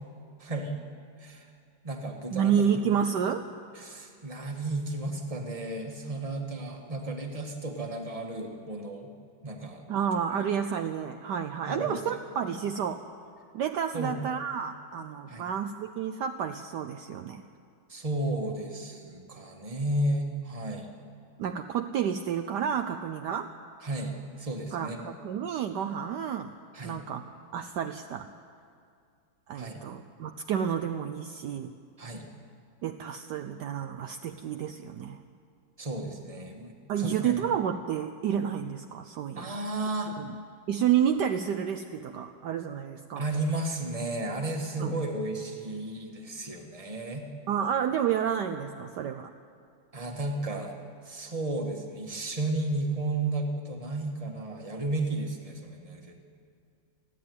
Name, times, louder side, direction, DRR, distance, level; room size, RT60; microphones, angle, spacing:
voice 1, 0.4-0.8 1.2-1.4 1.8-2.5 3.8-9.1 9.4-9.8 10.3-10.4 11.7-12.0 13.9-14.2 15.3-15.5 17.9-20.9 23.8-25.0 26.7-27.0 29.5-29.8 32.0-32.3 35.8-37.4 39.3-40.1 43.1-47.2 49.9-50.8 51.0-56.2, right 2 dB, 20° right, 2 dB, 1.7 m, -33 dB
voice 2, 2.3-3.5 9.9-13.0 13.5-17.4 21.4-23.5 24.7-26.5 26.8-27.2 27.5-28.3 29.5-31.7 32.8-35.2 36.9-39.7 40.2-40.3 40.7-43.2 44.8-45.0 47.5-49.3, right 8 dB, 70° right, 7 dB, 1.2 m, -30 dB
29.0 x 10.5 x 9.5 m, 2.3 s
omnidirectional pair, 2.1 m